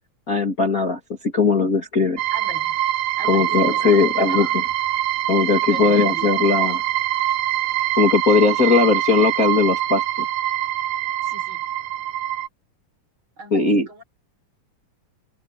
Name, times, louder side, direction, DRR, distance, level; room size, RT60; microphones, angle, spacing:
voice 1, 0.3-2.2 3.2-4.5 5.3-6.8 8.0-10.3 13.5-13.9, left 4 dB, 30° left, 2.4 m, -19 dB
sound 1, 2.2-12.5, right 13 dB, 80° right, 2.7 m, -24 dB
voice 2, 2.3-2.7 3.2-4.5 5.7-6.4 11.2-11.6 13.4-14.0, right 1 dB, 35° right, 5.6 m, -39 dB
open air
omnidirectional pair, 3.8 m